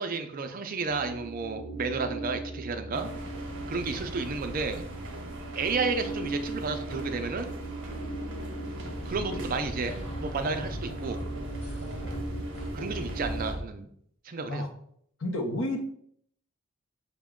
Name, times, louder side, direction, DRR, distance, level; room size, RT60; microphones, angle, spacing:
voice 1, 0.0-3.1 3.7-4.8 5.6-7.5 9.1-11.2 12.7-13.9 14.2-14.7, right 4 dB, 40° right, 7 dB, 0.4 m, -32 dB
sound 1, 0.8-13.5, right 1 dB, 85° left, 0.9 m, -39 dB
sound 2, 2.9-13.5, right 1 dB, 60° right, 0.8 m, -42 dB
sound 3, 8.7-13.6, equal, 30° left, 0.8 m, -38 dB
voice 2, 15.2-15.8, left 1 dB, 60° left, 5 dB, 0.6 m, -31 dB
5.8 x 2.2 x 3.6 m, 0.67 s
head